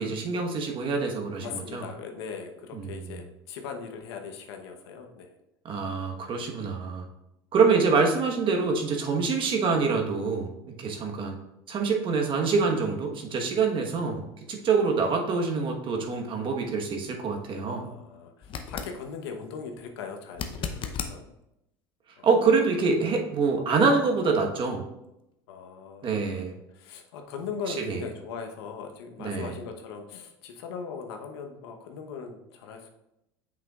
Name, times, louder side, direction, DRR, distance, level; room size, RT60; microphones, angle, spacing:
voice 1, 0.0-1.8 2.7-3.2 5.6-7.0 7.5-11.4 11.7-17.8 22.2-24.8 26.0-26.5 27.7-28.0 29.2-29.5, right 4 dB, 40° right, 2 dB, 1.3 m, -26 dB
voice 2, 1.4-5.3 17.7-21.3 22.2-22.3 25.5-32.9, left 6 dB, 80° left, 4 dB, 1.0 m, -39 dB
sound 1, 18.4-19.0 20.3-21.2 24.2-24.3, left 6 dB, 40° left, 0.7 m, -34 dB
7.6 x 5.9 x 2.4 m, 0.87 s
supercardioid pair, 95°, 13 cm